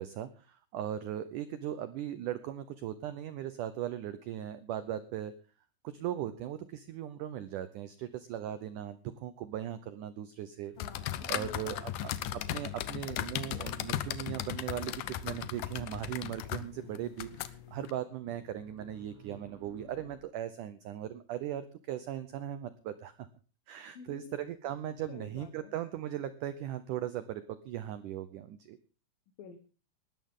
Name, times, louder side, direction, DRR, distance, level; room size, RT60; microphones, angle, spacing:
voice 1, 0.0-5.4 5.8-10.7 11.3-23.3 23.7-28.8, right 11 dB, 85° right, 12 dB, 1.8 m, -38 dB
sound 1, 10.8-17.9, left 12 dB, 80° left, 1.8 m, -37 dB
voice 2, 10.8-12.1 23.9-24.4 25.1-25.7 29.4-29.6, left 6 dB, 65° left, 4 dB, 3.0 m, -50 dB
sound 2, 13.3-20.2, right 2 dB, 20° right, 3.0 m, -55 dB
20.0 x 12.5 x 3.7 m, 0.35 s
omnidirectional pair, 4.7 m